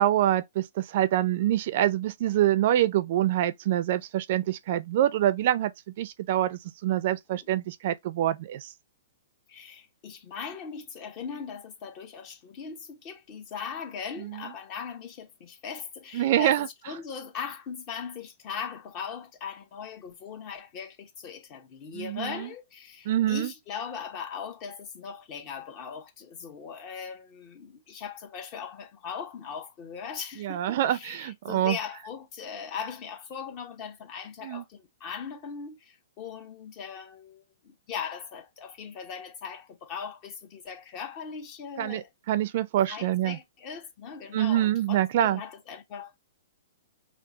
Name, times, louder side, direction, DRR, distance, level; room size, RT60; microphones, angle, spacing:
voice 1, 0.0-5.7 6.0-8.7 14.2-14.5 16.1-16.7 21.9-22.5 23.1-23.5 30.4-31.8 34.4-34.6 41.8-43.4 44.3-45.4, right 12 dB, 50° right, 0.4 m, -26 dB
voice 2, 9.5-42.1 42.9-46.2, left 6 dB, 35° left, 1.0 m, -39 dB
4.7 x 2.0 x 2.9 m
hypercardioid pair, 115°, 0 cm